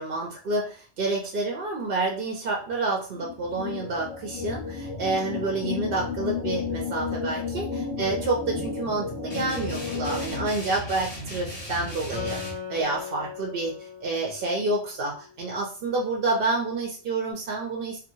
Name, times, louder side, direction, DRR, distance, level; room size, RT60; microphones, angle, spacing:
voice 1, 0.0-18.0, right 3 dB, 60° right, -1 dB, 0.8 m, -29 dB
sound 1, 3.1-10.5, left 5 dB, 80° left, 0.9 m, -32 dB
sound 2, 9.3-12.5, equal, 55° left, 1.4 m, -37 dB
Acoustic guitar, 12.1-15.6, left 7 dB, 5° right, 0.9 m, -39 dB
2.8 x 2.6 x 2.7 m, 0.39 s
omnidirectional pair, 1.1 m